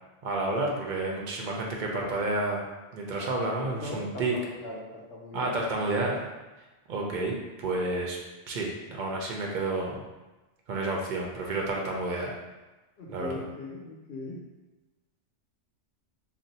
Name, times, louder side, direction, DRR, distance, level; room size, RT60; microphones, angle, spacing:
voice 1, 0.2-2.6 2.9-4.3 5.3-6.3 6.9-8.2 8.5-10.0 10.7-12.4 13.1-13.5, right 2 dB, 60° right, -1 dB, 0.5 m, -30 dB
voice 2, 3.8-5.5 13.0-14.4, left 2 dB, 65° left, -3 dB, 0.8 m, -39 dB
2.5 x 2.0 x 3.9 m, 1.1 s
omnidirectional pair, 1.2 m